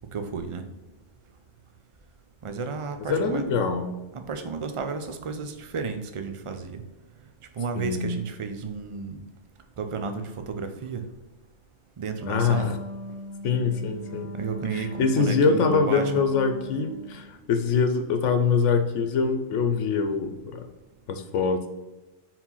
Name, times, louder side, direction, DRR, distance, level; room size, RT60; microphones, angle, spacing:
voice 1, 0.1-0.6 2.4-3.5 4.1-6.8 7.6-9.2 9.8-11.0 12.0-12.8 14.3-16.3, right 5 dB, 40° right, 7 dB, 0.5 m, -32 dB
voice 2, 3.1-3.9 7.7-8.2 12.3-12.7 13.4-14.3 14.7-20.6 21.1-21.7, left 5 dB, 85° left, 6 dB, 1.0 m, -24 dB
Wind instrument woodwind instrument, 12.1-17.3, equal, 10° right, 1.9 m, -39 dB
4.8 x 3.8 x 5.5 m, 1.2 s
omnidirectional pair, 1.2 m